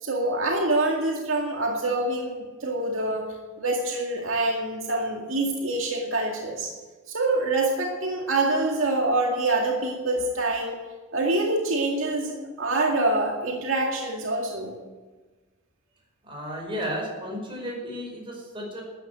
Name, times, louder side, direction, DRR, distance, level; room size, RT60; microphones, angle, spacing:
voice 1, 0.0-3.3 3.6-6.7 7.1-10.8 11.1-14.7, right 2 dB, 75° right, 0 dB, 2.1 m, -25 dB
voice 2, 16.2-18.8, equal, 25° right, -1 dB, 5.0 m, -33 dB
13.0 x 9.3 x 9.1 m, 1.3 s
head